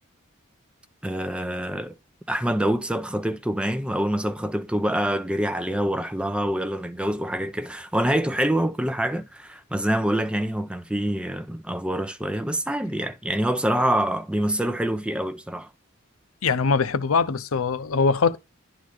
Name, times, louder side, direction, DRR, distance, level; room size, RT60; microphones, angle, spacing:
voice 1, 1.0-2.0 2.3-15.7, right 1 dB, 5° right, 0.5 m, -26 dB
voice 2, 16.4-18.4, left 5 dB, 80° left, 0.7 m, -22 dB
10.5 x 4.0 x 4.9 m
head